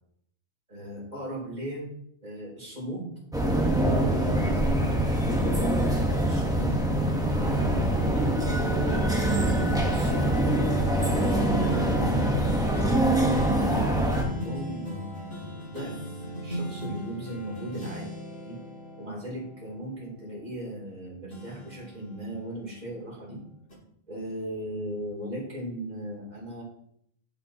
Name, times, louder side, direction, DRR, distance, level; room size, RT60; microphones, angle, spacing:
voice 1, 0.7-1.9 2.2-3.1 4.0-5.4 6.2-9.4 9.9-10.5 11.0-15.3 15.7-16.0 16.4-18.1 18.4-18.6 19.0-23.4 24.1-26.6, right 1 dB, 35° right, -4 dB, 2.9 m, -37 dB
sound 1, 3.3-14.2, right 1 dB, 5° right, 0.8 m, -24 dB
sound 2, 9.3-20.9 21.3-23.2 23.7-23.8, equal, 60° left, 1.9 m, -38 dB
10.5 x 5.1 x 2.8 m, 0.71 s
omnidirectional pair, 1.2 m